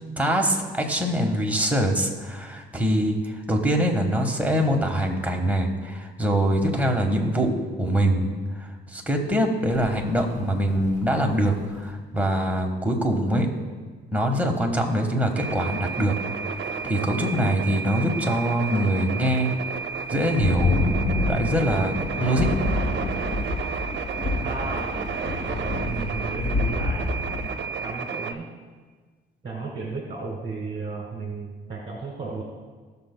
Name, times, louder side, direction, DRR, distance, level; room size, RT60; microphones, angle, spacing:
voice 1, 0.2-13.5 14.1-16.2 16.8-19.5 20.1-20.8 21.3-22.5, equal, 10° right, 1 dB, 1.4 m, -24 dB
sound 1, 9.7-11.9 15.5-15.9 16.4-16.6 17.9-18.0 18.8-18.9 19.1-19.4 20.0-27.5, left 2 dB, 40° left, 2.2 m, -28 dB
sound 2, 15.4-28.3, right 6 dB, 65° right, 0.7 m, -32 dB
voice 2, 24.4-24.9 25.8-27.1 27.8-28.5 29.4-32.4, right 3 dB, 30° right, -1 dB, 1.7 m, -34 dB
19.0 x 6.7 x 2.2 m, 1.4 s
cardioid pair, 90°, 20 cm